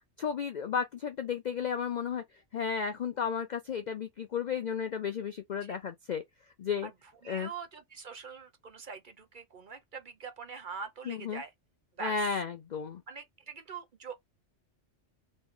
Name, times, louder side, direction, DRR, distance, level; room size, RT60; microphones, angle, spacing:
voice 1, 0.2-2.2 2.5-6.2 6.6-6.9 7.3-7.5 11.1-11.4 12.0-13.0, left 6 dB, 60° left, 0.4 m, -33 dB
voice 2, 7.2-11.5 12.0-12.2 13.1-14.2, right 5 dB, 50° right, 0.8 m, -43 dB
3.2 x 3.1 x 3.6 m
omnidirectional pair, 1.2 m